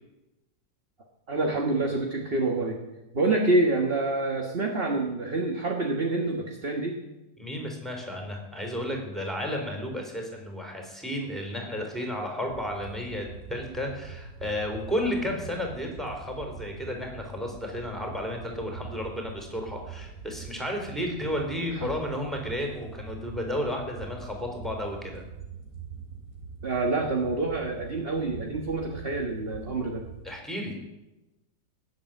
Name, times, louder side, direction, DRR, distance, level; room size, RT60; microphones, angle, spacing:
voice 1, 1.3-2.8 3.1-7.0 21.7-21.9 26.6-30.0, right 2 dB, 35° right, 2 dB, 1.6 m, -27 dB
voice 2, 7.4-25.2 30.2-30.8, left 1 dB, ahead, 1 dB, 3.8 m, -32 dB
sound 1, 12.5-30.2, right 6 dB, 50° right, 4.3 m, -44 dB
19.0 x 7.8 x 9.2 m, 1.0 s
omnidirectional pair, 2.0 m